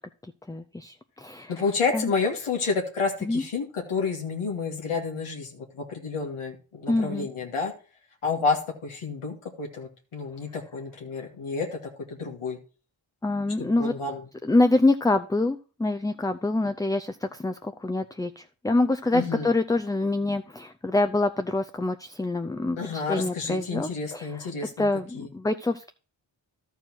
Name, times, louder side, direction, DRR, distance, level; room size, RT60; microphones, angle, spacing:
voice 1, 0.5-1.5 1.9-2.1 3.2-3.4 6.9-7.3 13.2-13.9 14.4-24.5 24.8-25.9, left 2 dB, 10° left, 8 dB, 0.5 m, -26 dB
voice 2, 1.5-7.7 8.2-11.8 12.2-12.6 13.6-14.2 19.1-19.5 22.8-24.9 25.1-25.3, left 4 dB, 85° left, 1 dB, 1.9 m, -30 dB
12.0 x 4.6 x 6.1 m, 0.36 s
cardioid pair, 50°, 49 cm